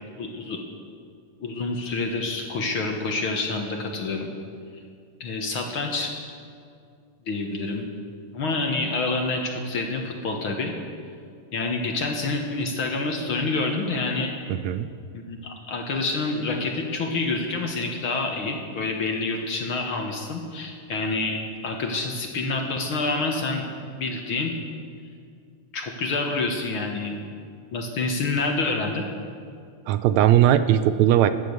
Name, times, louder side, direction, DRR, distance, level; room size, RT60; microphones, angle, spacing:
voice 1, 0.2-0.6 1.4-4.3 5.2-6.1 7.3-7.8 8.3-10.7 11.5-14.3 15.1-23.7 24.0-24.5 25.7-27.2 27.7-29.1, left 3 dB, 55° left, 2 dB, 1.8 m, -27 dB
voice 2, 14.5-14.9 29.9-31.3, right 11 dB, 80° right, 12 dB, 1.8 m, -19 dB
14.0 x 10.5 x 8.1 m, 2.3 s
omnidirectional pair, 3.3 m